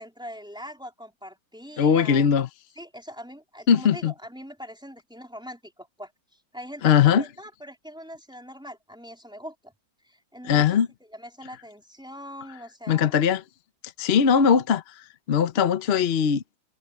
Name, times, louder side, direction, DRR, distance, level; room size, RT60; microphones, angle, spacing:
voice 1, 0.0-2.3 2.8-9.7 10.0-10.8 11.1-13.1, equal, ahead, 3.7 m, -42 dB
voice 2, 1.8-2.5 3.7-4.1 6.8-7.2 10.4-10.9 12.9-13.4 14.0-14.8 15.3-16.6, left 7 dB, 50° left, 0.8 m, -20 dB
omnidirectional pair, 2.0 m